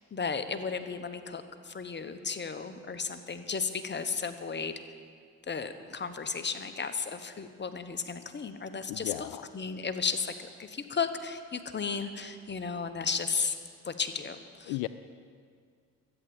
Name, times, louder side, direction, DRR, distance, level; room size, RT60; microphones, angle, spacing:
voice 1, 0.1-1.4 1.7-4.7 5.5-9.3 9.5-10.3 10.9-13.5 13.9-14.4, left 5 dB, 30° left, 9 dB, 1.2 m, -34 dB
voice 2, 8.9-9.5 14.7-14.9, left 18 dB, 80° left, 14 dB, 0.5 m, -34 dB
13.0 x 8.5 x 8.9 m, 2.1 s
supercardioid pair, 60°, 36 cm